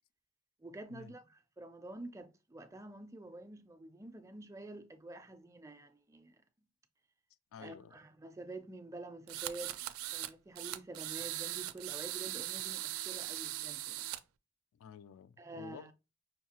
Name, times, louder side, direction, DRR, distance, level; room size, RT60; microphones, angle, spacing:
voice 1, 0.6-6.4 7.6-9.8 10.1-14.1 15.4-15.9, right 2 dB, 15° right, 0.4 m, -48 dB
voice 2, 7.5-8.0 14.7-15.9, left 6 dB, 75° left, 0.3 m, -51 dB
sound 1, 9.3-10.3 10.6-14.2, right 14 dB, 90° right, 0.3 m, -40 dB
5.6 x 2.3 x 2.8 m
head